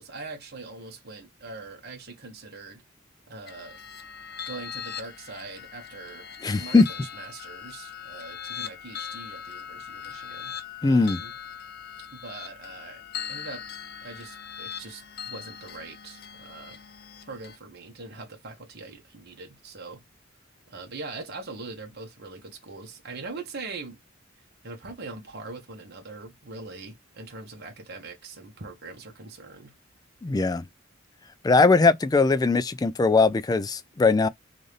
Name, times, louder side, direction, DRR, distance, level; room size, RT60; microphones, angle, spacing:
voice 1, 0.0-2.8 3.3-3.8 4.4-6.2 6.5-10.5 10.8-11.3 12.1-13.0 13.3-13.6 14.0-16.8 17.3-20.0 20.7-24.0 24.6-29.7, right 3 dB, 55° right, 1.3 m, -42 dB
sound 1, 3.5-17.6, left 8 dB, 50° left, 0.7 m, -40 dB
voice 2, 6.4-6.9 10.8-11.2 30.2-30.6 31.4-34.3, left 3 dB, 20° left, 0.3 m, -20 dB
3.8 x 2.6 x 3.2 m
head